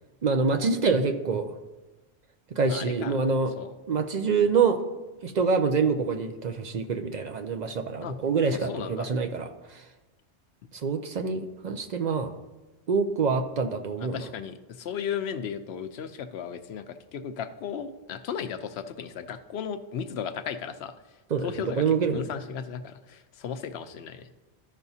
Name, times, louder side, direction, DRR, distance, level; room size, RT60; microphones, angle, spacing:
voice 1, 0.2-1.5 2.5-3.5 3.9-4.8 5.2-9.8 10.8-12.3 12.9-14.3 21.3-22.2, right 5 dB, 55° right, 6 dB, 0.5 m, -26 dB
voice 2, 2.7-3.1 3.5-3.7 8.0-8.1 8.5-9.1 14.1-20.9 21.4-24.3, left 7 dB, 75° left, 10 dB, 0.8 m, -35 dB
14.0 x 5.8 x 2.7 m, 1.1 s
omnidirectional pair, 1.1 m